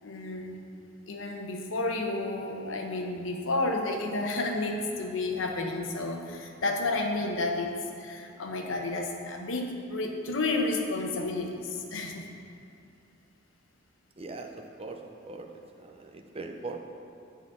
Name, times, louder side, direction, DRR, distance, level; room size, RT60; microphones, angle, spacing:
voice 1, 0.0-0.6 1.1-7.7 8.0-12.3, left 2 dB, 75° left, 3 dB, 0.9 m, -31 dB
voice 2, 14.2-16.9, right 3 dB, 30° right, 4 dB, 0.6 m, -41 dB
8.9 x 4.1 x 7.1 m, 2.6 s
head